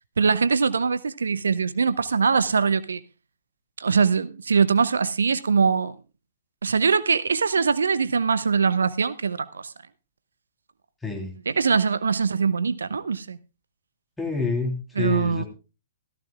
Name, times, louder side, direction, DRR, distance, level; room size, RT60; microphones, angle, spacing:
voice 1, 0.2-3.0 3.8-5.9 6.6-9.7 11.5-13.4 15.0-15.4, right 5 dB, 70° right, 0.6 m, -22 dB
voice 2, 11.0-11.3 14.2-15.5, left 4 dB, 5° left, 3.4 m, -28 dB
17.0 x 14.5 x 2.4 m
figure-of-eight pair, 115°, 0 cm